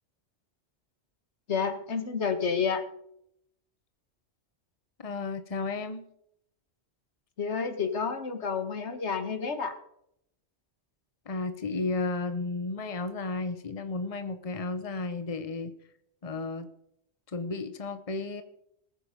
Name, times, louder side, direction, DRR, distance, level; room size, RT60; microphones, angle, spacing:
voice 1, 1.5-2.8 7.4-9.7, left 5 dB, 85° left, 8 dB, 1.8 m, -30 dB
voice 2, 5.0-6.0 11.3-15.7 16.2-16.7 17.3-18.4, left 3 dB, 35° left, 10 dB, 1.1 m, -33 dB
20.0 x 9.7 x 5.3 m, 0.74 s
omnidirectional pair, 1.1 m